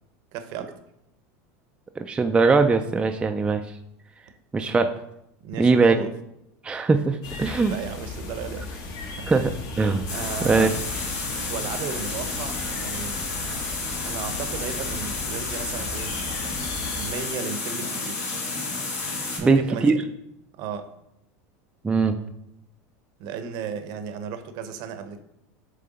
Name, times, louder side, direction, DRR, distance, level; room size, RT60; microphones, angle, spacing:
voice 1, 0.3-0.7 5.4-6.1 7.4-9.3 10.1-10.8 11.5-13.3 14.0-16.1 17.0-18.2 19.4-20.0 20.6-20.9 23.2-25.2, right 6 dB, 55° right, 9 dB, 0.7 m, -35 dB
voice 2, 2.0-3.6 4.5-4.9 5.6-6.0 6.6-7.7 9.3-9.5 9.8-10.1 10.4-10.7 19.4-19.9 21.8-22.2, right 4 dB, 10° right, 6 dB, 0.3 m, -20 dB
sound 1, 7.2-17.1, left 3 dB, 50° left, 1.1 m, -36 dB
sound 2, 10.1-19.4, left 3 dB, 90° left, 2.2 m, -31 dB
7.4 x 3.3 x 3.9 m, 0.81 s
supercardioid pair, 115°, 8 cm